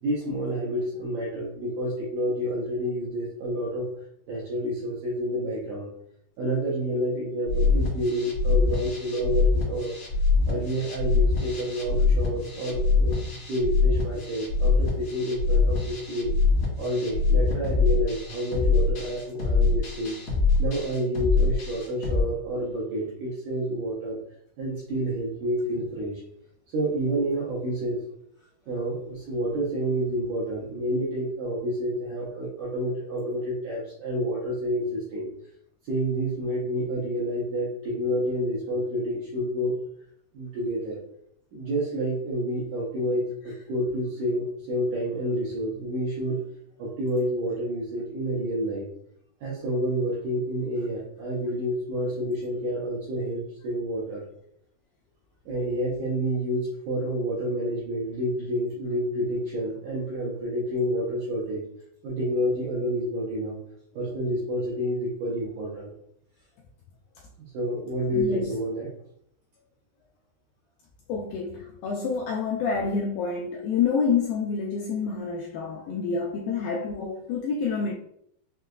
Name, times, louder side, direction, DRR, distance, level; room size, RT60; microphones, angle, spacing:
voice 1, 0.0-3.9 4.3-5.9 6.4-9.9 10.5-13.2 13.5-16.3 16.8-20.2 20.6-24.2 24.6-26.2 26.7-28.0 28.7-35.3 35.8-39.7 40.3-41.0 41.5-46.4 46.8-48.9 49.4-54.2 55.5-61.6 62.0-63.6 63.9-65.9 67.5-68.9, equal, 80° right, -5 dB, 1.8 m, -29 dB
sound 1, 7.5-22.2, left 4 dB, 65° left, 1.3 m, -24 dB
voice 2, 68.1-68.5 71.1-77.9, left 5 dB, 85° left, -1 dB, 2.0 m, -28 dB
6.3 x 2.2 x 2.3 m, 0.71 s
omnidirectional pair, 4.5 m